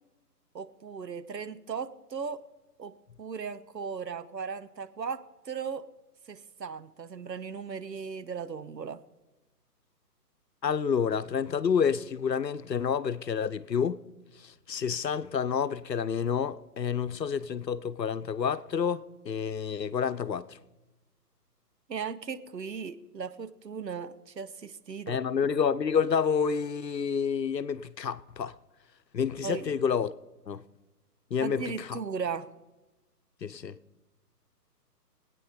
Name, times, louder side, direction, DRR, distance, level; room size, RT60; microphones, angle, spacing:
voice 1, 0.5-2.4 2.8-5.9 6.3-9.0 21.9-25.2 29.4-29.7 31.4-32.5, right 6 dB, 85° right, 1.1 m, -37 dB
voice 2, 10.6-14.0 14.4-20.5 25.1-28.5 29.1-30.1 30.5-30.6 31.3-32.0 33.4-33.8, left 7 dB, 85° left, 0.9 m, -29 dB
23.0 x 9.1 x 5.1 m
figure-of-eight pair, 140°, 49 cm